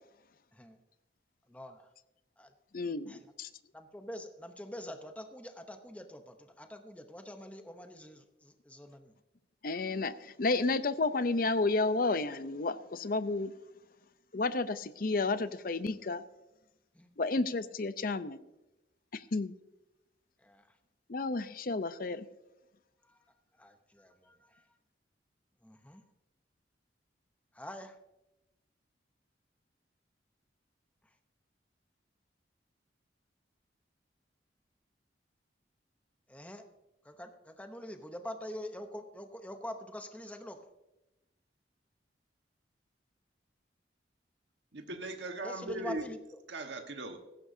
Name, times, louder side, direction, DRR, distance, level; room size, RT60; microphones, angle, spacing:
voice 1, 1.5-1.8 2.4-2.5 3.1-3.2 3.7-8.2 8.7-9.1 17.0-17.1 20.4-20.6 23.6-24.3 25.6-26.0 27.6-27.9 36.3-36.6 37.1-40.6 45.4-46.2, equal, 10° left, 6 dB, 0.8 m, -44 dB
voice 2, 2.7-3.5 9.6-13.5 14.3-16.2 17.2-18.4 19.1-19.5 21.1-22.3, left 3 dB, 50° left, 13 dB, 0.6 m, -31 dB
voice 3, 44.7-46.1 46.5-47.2, right 2 dB, 75° right, 4 dB, 1.4 m, -39 dB
16.5 x 15.0 x 2.7 m, 0.96 s
head